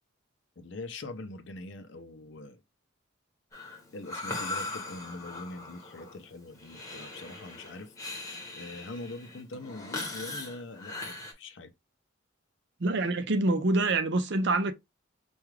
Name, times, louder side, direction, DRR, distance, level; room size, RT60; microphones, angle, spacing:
voice 1, 0.6-2.6 3.9-7.9 8.6-11.7, left 2 dB, 60° left, 0.6 m, -43 dB
Breathing, 3.5-11.3, left 2 dB, 15° left, 1.2 m, -40 dB
voice 2, 12.8-14.7, right 2 dB, 55° right, 0.6 m, -26 dB
4.7 x 2.3 x 3.1 m
head